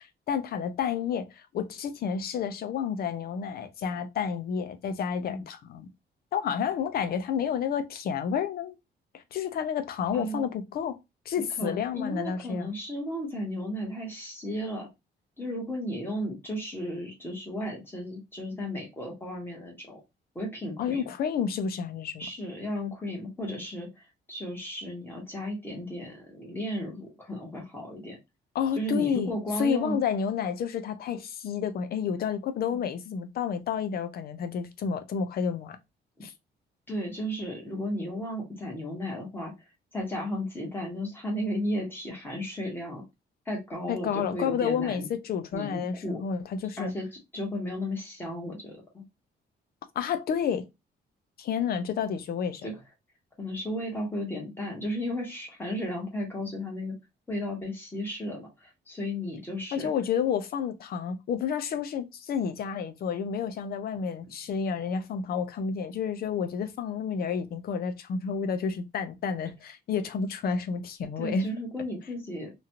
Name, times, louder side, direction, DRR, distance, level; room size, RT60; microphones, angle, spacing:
voice 1, 0.0-5.9 6.3-8.8 9.1-11.0 11.3-12.7 20.8-22.3 28.5-29.3 29.6-35.8 36.2-36.3 43.9-46.9 50.0-50.7 51.4-52.7 59.7-71.5, left 7 dB, 55° left, 0.5 m, -30 dB
voice 2, 11.6-14.9 15.4-20.0 20.3-21.1 22.2-28.2 28.7-30.0 36.9-39.5 39.9-43.0 43.4-45.1 45.5-46.2 46.8-47.1 47.3-49.0 52.6-52.7 53.4-56.9 57.3-59.9 71.2-72.5, equal, 10° left, 1.3 m, -34 dB
3.0 x 2.5 x 2.7 m
cardioid pair, 155°, 19 cm